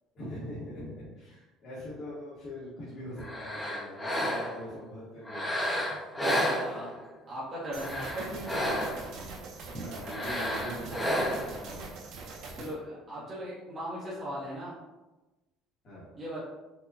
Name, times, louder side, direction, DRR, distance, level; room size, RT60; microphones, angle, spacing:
voice 1, 0.1-5.9 9.7-11.8 15.8-16.1, equal, 35° left, -10 dB, 1.1 m, -42 dB
sound 1, 3.2-4.7 5.2-7.1 7.6-9.1 10.0-11.6, equal, 10° left, 0.7 m, -31 dB
voice 2, 6.2-6.9 7.3-8.8 12.5-14.7 16.2-16.4, equal, 25° right, -8 dB, 0.8 m, -38 dB
sound 2, 7.7-12.7, right 3 dB, 55° right, 0.6 m, -42 dB
4.6 x 2.2 x 2.6 m, 1.1 s
cardioid pair, 165°, 0 cm